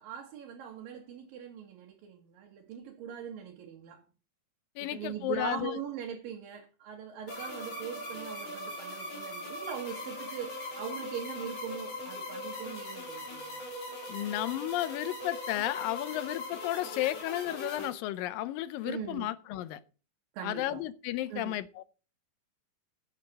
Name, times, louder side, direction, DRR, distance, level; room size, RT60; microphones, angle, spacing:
voice 1, 0.0-4.0 4.8-13.6 18.8-19.3 20.3-20.8 21.3-21.5, right 8 dB, 85° right, 3.2 m, -41 dB
voice 2, 4.8-5.8 14.1-19.8 20.4-21.8, left 14 dB, 85° left, 2.4 m, -33 dB
sound 1, 7.3-17.9, left 1 dB, 50° left, 4.3 m, -40 dB
15.5 x 7.6 x 4.1 m
omnidirectional pair, 4.0 m